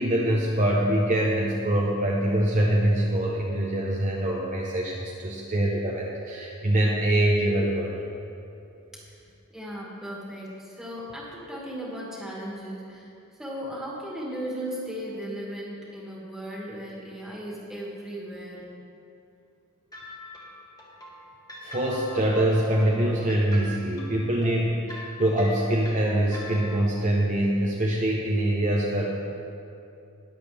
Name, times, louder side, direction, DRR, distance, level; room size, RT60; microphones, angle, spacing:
voice 1, 0.0-7.9 21.6-29.1, right 1 dB, 35° right, -3 dB, 1.0 m, -24 dB
voice 2, 9.5-13.1 13.4-18.7, equal, ahead, -6 dB, 2.2 m, -36 dB
sound 1, 19.9-27.0, left 1 dB, 15° left, 1.8 m, -42 dB
20.5 x 7.7 x 3.5 m, 2.7 s
head